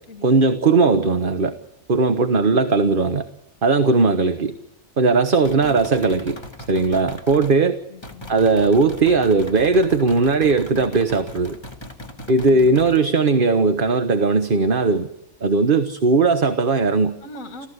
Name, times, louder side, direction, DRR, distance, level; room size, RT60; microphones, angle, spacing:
voice 1, 0.2-1.5 1.9-3.3 3.6-4.5 5.0-6.4 6.7-7.8 8.3-11.6 12.3-15.1 15.4-17.2, right 3 dB, 40° right, 9 dB, 1.3 m, -18 dB
sound 1, 5.4-7.6 8.0-13.0, left 1 dB, 20° left, 2.1 m, -38 dB
voice 2, 7.6-8.3 17.2-17.7, left 3 dB, 60° left, 6 dB, 2.4 m, -40 dB
29.5 x 15.0 x 8.1 m, 0.79 s
omnidirectional pair, 1.5 m